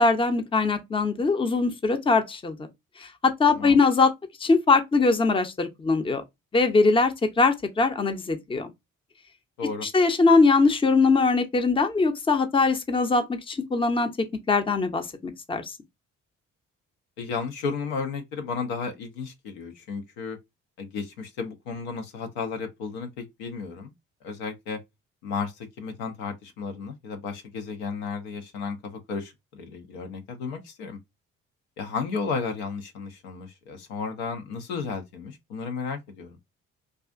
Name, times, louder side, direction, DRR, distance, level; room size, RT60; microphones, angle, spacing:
voice 1, 0.0-2.7 3.0-4.1 4.4-6.2 6.5-8.7 9.8-14.1 14.5-15.6, left 3 dB, 15° left, 0.5 m, -22 dB
voice 2, 17.2-20.4 20.8-23.9 24.2-24.8 25.2-31.0 31.8-36.4, left 5 dB, 80° left, 0.6 m, -33 dB
2.4 x 2.3 x 2.4 m
hypercardioid pair, 45°, 35 cm